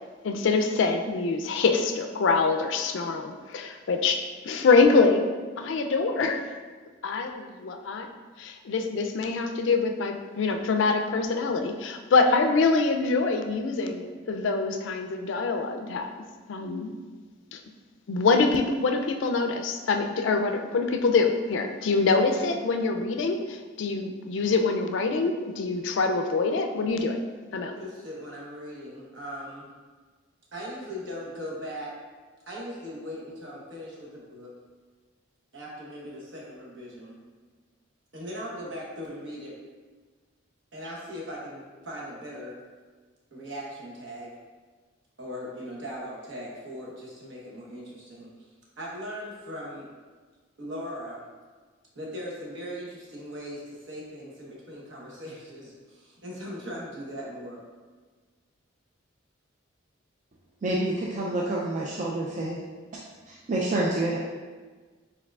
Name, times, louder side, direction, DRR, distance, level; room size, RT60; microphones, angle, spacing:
voice 1, 0.2-5.3 5.6-6.4 7.0-8.1 8.4-16.1 16.5-16.9 17.5-17.6 18.1-27.2 27.5-27.7, left 4 dB, 70° left, 5 dB, 0.4 m, -25 dB
voice 2, 27.7-29.7 30.5-31.9 32.5-34.5 35.5-37.2 38.1-39.5 40.7-42.6 43.3-44.4 45.2-48.5 48.8-49.9 50.6-51.2 51.9-57.6, equal, 65° right, -4 dB, 1.1 m, -39 dB
voice 3, 60.6-62.6 63.3-64.2, right 1 dB, 40° right, -3 dB, 0.3 m, -28 dB
4.6 x 3.7 x 2.3 m, 1.4 s
head